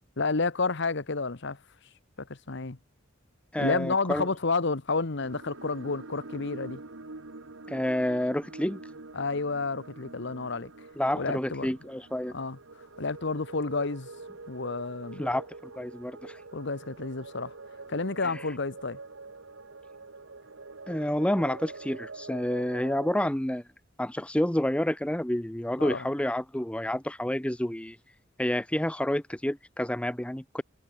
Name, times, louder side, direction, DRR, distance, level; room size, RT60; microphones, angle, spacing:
voice 1, 0.2-1.6 2.2-2.8 3.6-6.8 9.1-10.7 11.1-11.7 12.3-12.6 13.0-14.1 14.5-15.2 16.5-17.5 17.9-19.0 25.8-26.1, left 3 dB, 65° left, 1.2 m, -30 dB
voice 2, 3.5-4.3 7.7-8.8 11.0-12.3 15.2-16.4 20.9-23.6 24.0-28.0 28.4-30.6, left 1 dB, 5° left, 0.8 m, -29 dB
sound 1, 5.2-23.3, right 3 dB, 75° right, 1.5 m, -45 dB
head